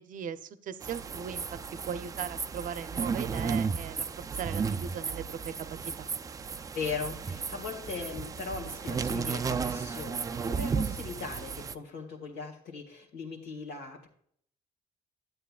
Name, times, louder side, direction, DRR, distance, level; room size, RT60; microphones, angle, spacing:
voice 1, 0.0-1.4 1.7-6.1, right 8 dB, 50° right, 12 dB, 0.6 m, -39 dB
sound 1, 0.8-11.7, right 5 dB, 20° right, 0.3 m, -34 dB
voice 2, 6.7-14.1, left 4 dB, 70° left, -1 dB, 1.7 m, -39 dB
11.0 x 8.8 x 2.4 m, 0.64 s
cardioid pair, 110°, 17 cm